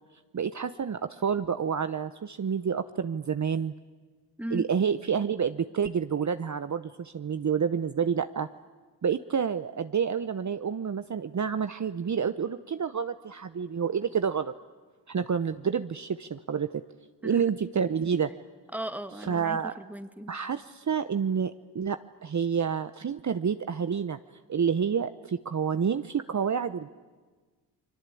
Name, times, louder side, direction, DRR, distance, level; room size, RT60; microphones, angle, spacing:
voice 1, 0.3-3.7 4.5-8.5 9.0-14.5 15.1-16.8 17.2-18.3 19.3-19.7 20.3-24.2 24.5-26.9, right 7 dB, 40° right, 11 dB, 0.9 m, -29 dB
voice 2, 18.7-20.3, right 1 dB, 5° right, 10 dB, 1.7 m, -37 dB
30.0 x 21.5 x 8.5 m, 1.4 s
supercardioid pair, 50°, 43 cm